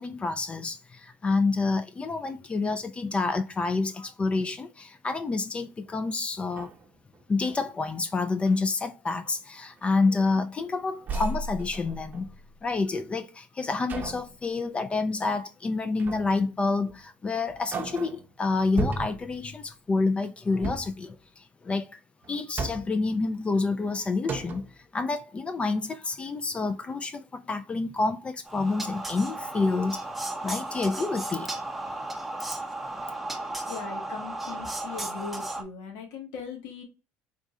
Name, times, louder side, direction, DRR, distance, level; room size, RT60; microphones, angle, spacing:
voice 1, 0.0-6.7 7.3-12.3 12.6-22.0 22.3-24.6 24.9-30.0 30.4-31.5, left 3 dB, 25° left, 0.4 m, -28 dB
sound 1, 5.9-6.0 6.4-7.7 8.2-8.6 9.2-9.4 9.8-10.7 11.0-12.6 13.9-14.4 16.0-16.4 16.9-17.0 17.5-18.3 18.8-19.4 20.5-21.0 22.2-23.1 23.8-23.9 24.2-24.8, right 2 dB, 35° right, 0.7 m, -35 dB
sound 2, 28.5-35.6, right 2 dB, 5° right, 0.8 m, -35 dB
voice 2, 33.7-36.8, left 6 dB, 80° left, 1.5 m, -39 dB
3.7 x 2.4 x 4.1 m
supercardioid pair, 100°, 5 cm